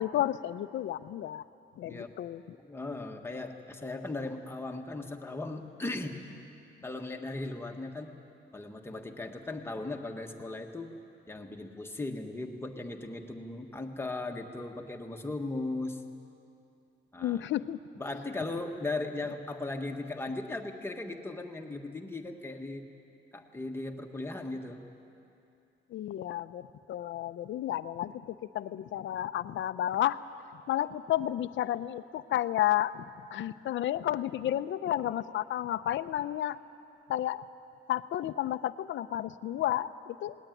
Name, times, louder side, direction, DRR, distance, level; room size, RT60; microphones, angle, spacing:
voice 1, 0.0-1.4 1.8-2.6 17.2-17.8 25.9-30.2 30.7-33.0 33.3-36.6 37.1-37.4 37.9-40.4, left 12 dB, 70° left, 13 dB, 0.7 m, -32 dB
voice 2, 2.6-6.2 6.8-8.1 8.5-10.9 11.3-16.0 17.1-17.5 18.0-22.8 23.3-24.8, left 2 dB, 10° left, 3 dB, 1.5 m, -37 dB
19.5 x 19.0 x 9.2 m, 2.7 s
cardioid pair, 140°, 20 cm